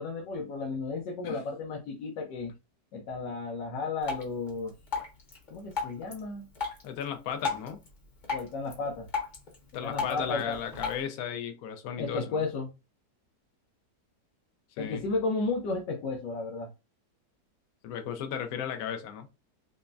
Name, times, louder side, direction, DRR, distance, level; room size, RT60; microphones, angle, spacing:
voice 1, 0.0-2.5 2.9-4.7 5.5-6.5 8.3-9.1 9.8-10.6 12.0-12.7 14.8-16.7, left 3 dB, 85° left, 1.5 m, -33 dB
Drip, 4.0-11.0, left 4 dB, 35° left, 0.9 m, -38 dB
voice 2, 6.8-7.8 9.7-12.4 14.8-15.0 17.8-19.3, left 8 dB, 65° left, 1.0 m, -35 dB
5.6 x 2.1 x 2.6 m
omnidirectional pair, 1.9 m